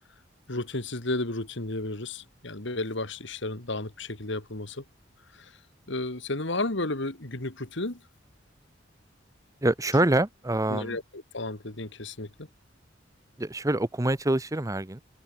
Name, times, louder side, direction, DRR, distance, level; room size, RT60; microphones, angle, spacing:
voice 1, 0.5-4.8 5.9-8.0 10.7-12.3, left 2 dB, 65° left, 2.7 m, -32 dB
voice 2, 9.6-11.0 13.4-15.0, right 1 dB, 15° right, 0.9 m, -25 dB
open air
head